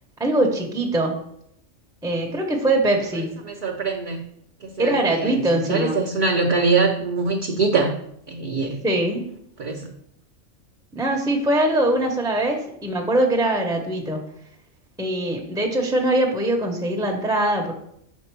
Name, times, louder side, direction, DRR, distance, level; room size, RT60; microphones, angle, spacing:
voice 1, 0.2-1.2 2.0-3.3 4.8-6.0 8.8-9.2 10.9-14.2 15.0-17.7, right 1 dB, 5° right, 1 dB, 0.6 m, -22 dB
voice 2, 3.4-4.2 4.6-7.9 8.3-8.8 9.6-9.9, right 4 dB, 55° right, 1 dB, 0.6 m, -23 dB
6.4 x 3.8 x 4.5 m, 0.74 s
omnidirectional pair, 1.3 m